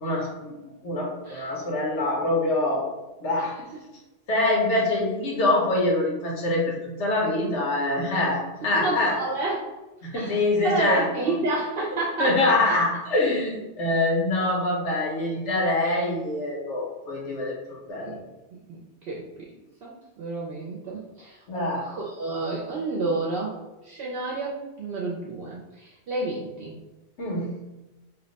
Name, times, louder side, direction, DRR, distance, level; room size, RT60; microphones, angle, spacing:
voice 1, 0.0-0.5 0.8-2.8 3.2-3.5 4.3-9.1 10.0-11.0 12.2-17.5 17.9-18.1 21.5-21.8 27.2-27.5, left 2 dB, 75° left, -2 dB, 1.2 m, -24 dB
voice 2, 8.8-9.6 10.1-12.8 18.0-18.2 18.7-19.2 19.8-23.5 23.8-26.7, right 2 dB, 60° right, -5 dB, 0.7 m, -30 dB
2.8 x 2.1 x 3.9 m, 1.0 s
omnidirectional pair, 1.2 m